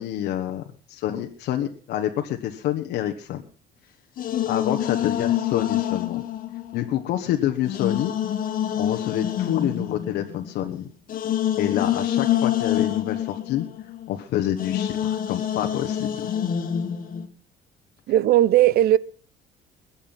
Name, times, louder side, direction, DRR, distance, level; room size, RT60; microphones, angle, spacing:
voice 1, 0.0-3.4 4.4-6.2 6.7-8.1 8.8-10.9 11.6-13.7 14.1-16.3, left 12 dB, 80° left, 1.3 m, -27 dB
sound 1, 4.2-7.2 7.6-14.2 14.6-17.3, left 10 dB, 55° left, 1.7 m, -26 dB
voice 2, 18.1-19.0, right 13 dB, 65° right, 0.7 m, -17 dB
21.5 x 7.3 x 5.8 m
cardioid pair, 110°, 17 cm